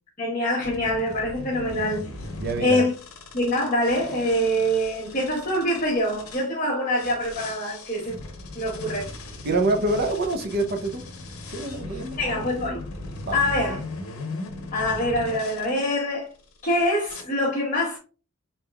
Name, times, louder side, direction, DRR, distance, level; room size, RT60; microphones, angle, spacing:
voice 1, 0.2-2.1 2.6-2.9 3.3-8.1 8.5-9.1 12.2-12.8 13.3-13.8 14.7-16.3 16.6-18.0, left 1 dB, 35° left, 1.1 m, -24 dB
sound 1, 0.6-6.5 6.9-15.7 16.3-16.7 17.1-17.2, left 2 dB, 85° left, 0.8 m, -38 dB
voice 2, 2.4-2.8 8.0-8.1 9.4-11.0 11.5-12.2 13.2-13.4, right 2 dB, 45° right, 0.6 m, -26 dB
3.9 x 3.5 x 2.3 m
head